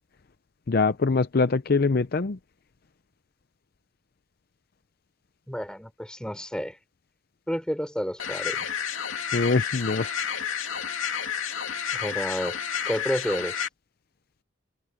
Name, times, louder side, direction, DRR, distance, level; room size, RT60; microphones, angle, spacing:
voice 1, 0.7-2.4 9.3-10.1, left 4 dB, 45° left, 0.5 m, -23 dB
voice 2, 5.5-6.8 7.5-8.7 11.9-12.6 12.9-13.6, equal, 5° left, 3.6 m, -30 dB
sound 1, 8.2-13.7, left 8 dB, 80° left, 2.6 m, -30 dB
head